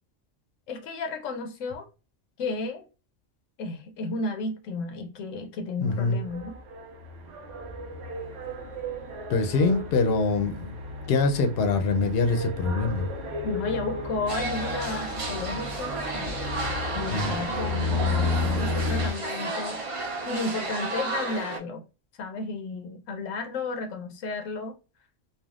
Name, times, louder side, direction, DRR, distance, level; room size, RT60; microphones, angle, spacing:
voice 1, 0.7-1.9 2.4-2.8 3.6-6.5 13.4-16.4 16.9-21.8 22.2-24.7, left 3 dB, 85° left, 0.9 m, -33 dB
voice 2, 5.8-6.2 9.3-10.7 11.1-13.1 17.1-17.4, left 3 dB, 60° left, 0.8 m, -24 dB
sound 1, 5.9-19.1, left 3 dB, 75° right, 1.0 m, -33 dB
sound 2, 14.3-21.6, right 2 dB, 45° right, 0.4 m, -32 dB
3.4 x 2.3 x 2.3 m
omnidirectional pair, 1.3 m